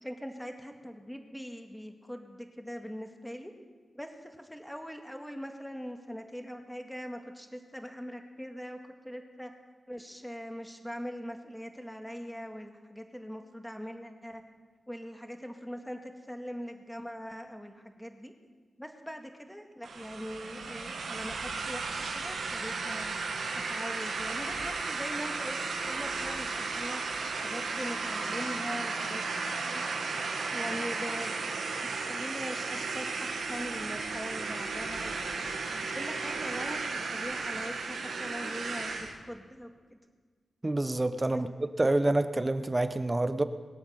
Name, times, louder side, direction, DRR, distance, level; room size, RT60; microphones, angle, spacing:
voice 1, 0.0-3.5 3.9-9.5 9.9-14.4 14.9-18.3 18.8-23.1 23.7-27.2 27.4-29.2 29.5-29.9 30.5-31.4 31.8-35.4 35.9-40.0 41.3-41.4, equal, 5° left, 4 dB, 2.0 m, -42 dB
sound 1, 19.8-39.1, right 4 dB, 85° right, 1.8 m, -34 dB
voice 2, 40.6-41.5 41.8-43.4, right 2 dB, 30° right, 10 dB, 1.0 m, -27 dB
22.0 x 7.9 x 6.6 m, 1.5 s
cardioid pair, 45°, 0 cm